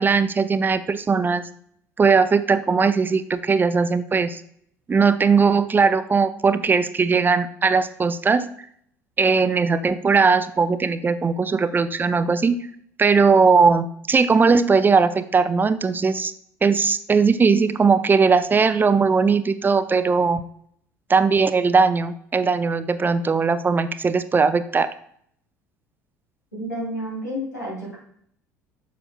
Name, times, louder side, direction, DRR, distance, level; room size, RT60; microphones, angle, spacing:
voice 1, 0.0-1.4 2.0-4.4 4.9-8.5 9.2-12.7 13.0-16.3 16.6-20.4 21.1-24.9, right 5 dB, 20° right, 13 dB, 0.4 m, -19 dB
voice 2, 26.6-28.0, equal, 90° left, -5 dB, 2.9 m, -30 dB
9.8 x 6.7 x 2.2 m, 0.66 s
figure-of-eight pair, 65°, 9 cm